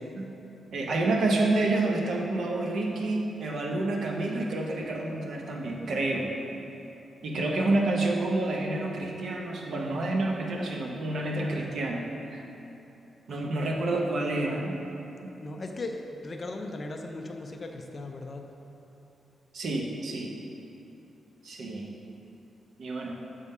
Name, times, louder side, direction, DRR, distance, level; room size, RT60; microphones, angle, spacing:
voice 1, 0.7-6.3 7.2-12.4 13.3-14.8 15.5-15.6 19.5-20.3 21.4-21.9 22.8-23.2, right 2 dB, 65° right, 0 dB, 0.8 m, -29 dB
voice 2, 15.4-18.4, left 2 dB, 35° left, 3 dB, 0.5 m, -38 dB
7.0 x 3.6 x 5.4 m, 3.0 s
wide cardioid pair, 140°, 0 cm